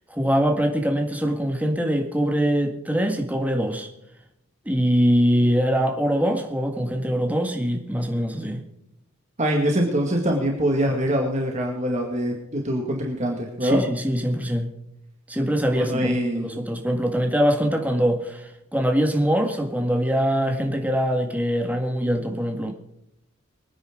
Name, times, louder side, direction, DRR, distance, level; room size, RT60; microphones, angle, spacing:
voice 1, 0.1-3.9 4.7-8.6 13.6-14.7 15.3-22.7, equal, 5° right, 3 dB, 1.9 m, -23 dB
voice 2, 9.4-13.8 15.7-16.5, equal, 35° right, 1 dB, 2.1 m, -24 dB
24.5 x 9.8 x 3.9 m, 0.83 s
head